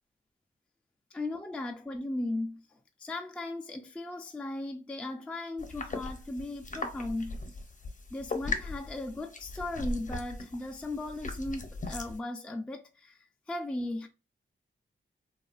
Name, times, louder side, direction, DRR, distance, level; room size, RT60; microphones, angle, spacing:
voice 1, 1.1-2.6 3.0-7.4 8.1-14.1, left 2 dB, 5° left, 0.3 m, -37 dB
sound 1, 5.6-12.2, left 2 dB, 40° left, 0.7 m, -38 dB
2.7 x 2.3 x 2.4 m
cardioid pair, 60°, 21 cm